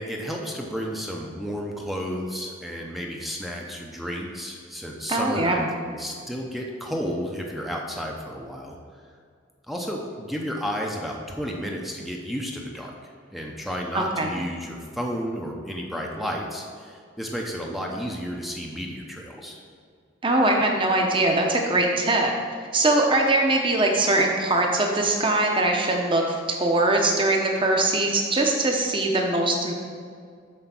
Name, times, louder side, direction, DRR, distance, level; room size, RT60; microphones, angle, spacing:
voice 1, 0.0-8.8 9.7-12.9 13.3-19.6, equal, ahead, -1 dB, 0.7 m, -32 dB
voice 2, 5.1-5.7 13.9-14.3 20.2-22.3 22.7-29.7, right 2 dB, 25° right, 1 dB, 0.9 m, -22 dB
7.9 x 4.5 x 6.0 m, 2.1 s
head